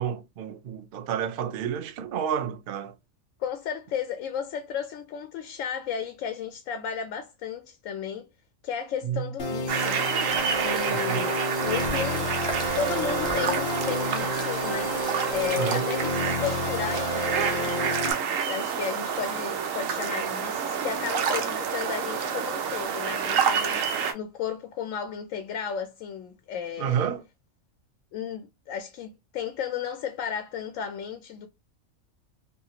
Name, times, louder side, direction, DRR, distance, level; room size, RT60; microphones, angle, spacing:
voice 1, 0.0-2.9 9.0-9.3 10.9-11.3 15.6-15.9 26.8-27.2, right 8 dB, 60° right, 0.6 m, -30 dB
voice 2, 3.4-8.3 8.6-10.0 10.5-12.3 12.7-15.0 15.3-17.9 18.5-23.8 24.1-27.0 28.1-31.5, left 8 dB, 85° left, 0.9 m, -34 dB
sound 1, 9.4-18.1, left 2 dB, 55° left, 0.7 m, -31 dB
sound 2, 9.7-24.1, right 7 dB, 90° right, 1.0 m, -28 dB
sound 3, 10.3-15.9, equal, 5° left, 0.3 m, -43 dB
2.8 x 2.3 x 2.8 m
omnidirectional pair, 1.3 m